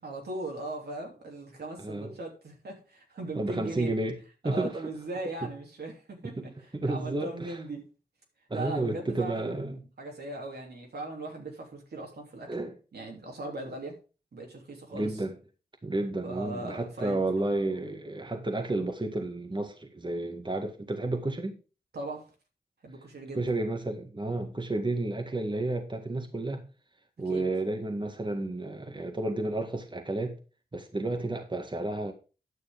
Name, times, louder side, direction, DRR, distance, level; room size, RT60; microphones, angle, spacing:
voice 1, 0.0-3.9 4.4-7.8 8.5-12.5 12.9-14.0 14.3-15.2 16.2-17.4 21.9-22.3 22.8-23.4 27.3-27.4, right 2 dB, 75° right, 3.1 m, -39 dB
voice 2, 1.8-2.1 3.3-4.2 4.4-4.8 5.4-5.5 6.2-7.6 8.5-9.8 12.5-12.7 14.9-15.3 15.8-21.6 23.4-26.6 27.2-30.4 30.7-32.1, right 2 dB, 30° right, 1.8 m, -31 dB
9.8 x 6.5 x 5.2 m
cardioid pair, 45°, 17 cm